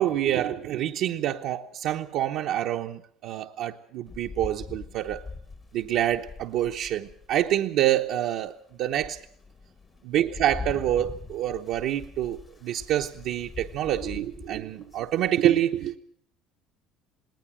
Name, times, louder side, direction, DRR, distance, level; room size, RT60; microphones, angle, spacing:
voice 1, 0.0-5.2 5.7-9.2 10.0-16.0, right 12 dB, 65° right, 0.9 m, -27 dB
Rain, 4.1-7.6 8.1-8.2 8.7-15.3, left 4 dB, 25° left, 1.2 m, -42 dB
19.5 x 18.5 x 7.5 m
cardioid pair, 130°, 0 cm